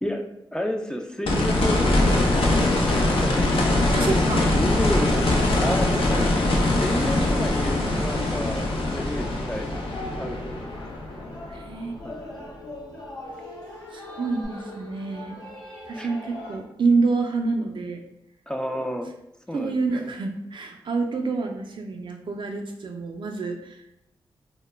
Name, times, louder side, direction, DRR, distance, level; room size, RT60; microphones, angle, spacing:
voice 1, 0.0-3.5 4.5-5.2 5.6-9.7 10.2-10.7 12.0-12.2 16.0-16.1 18.5-19.1 19.5-20.1, equal, 10° left, 3 dB, 0.4 m, -31 dB
sound 1, 1.3-12.2 14.4-14.5, left 2 dB, 70° left, 0.5 m, -22 dB
voice 2, 3.9-4.8 11.5-12.0 13.9-15.4 15.9-18.0 19.5-23.8, right 4 dB, 60° right, 3 dB, 0.4 m, -27 dB
sound 2, 6.9-16.6, left 1 dB, 45° left, 1.0 m, -41 dB
2.1 x 2.1 x 3.1 m, 0.85 s
supercardioid pair, 45°, 10 cm